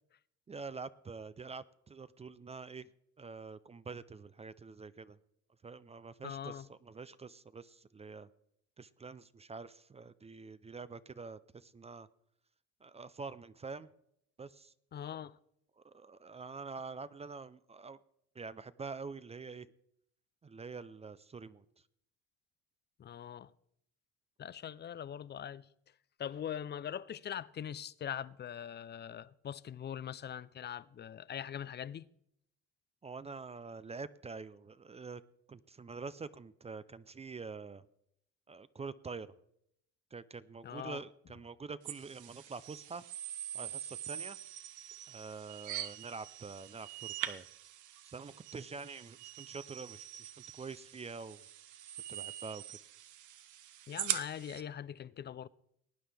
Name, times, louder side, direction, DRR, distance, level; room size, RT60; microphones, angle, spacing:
voice 1, 0.5-2.9 3.2-5.2 5.6-8.3 8.8-12.1 12.8-13.9 14.4-14.7 15.8-18.0 18.3-19.7 20.4-21.6 33.0-35.2 35.5-37.9 38.5-39.3 40.1-43.0 43.5-44.4 45.1-47.5 48.0-51.4 52.1-52.6, right 4 dB, 20° right, 0.4 m, -46 dB
voice 2, 6.2-6.7 14.9-15.4 23.0-23.5 24.4-25.6 26.2-32.0 40.6-41.0 53.9-55.5, left 9 dB, 35° left, 0.5 m, -42 dB
sound 1, 41.8-54.6, right 11 dB, 70° right, 0.9 m, -43 dB
18.5 x 9.3 x 3.4 m
cardioid pair, 90°, 31 cm